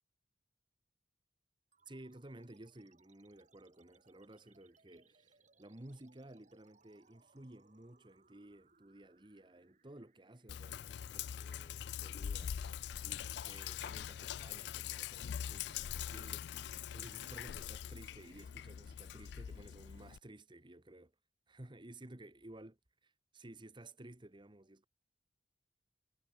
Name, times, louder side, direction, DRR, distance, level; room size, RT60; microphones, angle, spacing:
sound 1, 1.7-12.7, right 4 dB, 45° right, 4.6 m, -71 dB
voice 1, 1.9-12.6 13.0-21.1 21.5-22.7 23.0-24.9, right 1 dB, 25° right, 1.4 m, -55 dB
Sink (filling or washing), 10.5-20.2, left 9 dB, 65° left, 0.3 m, -43 dB
head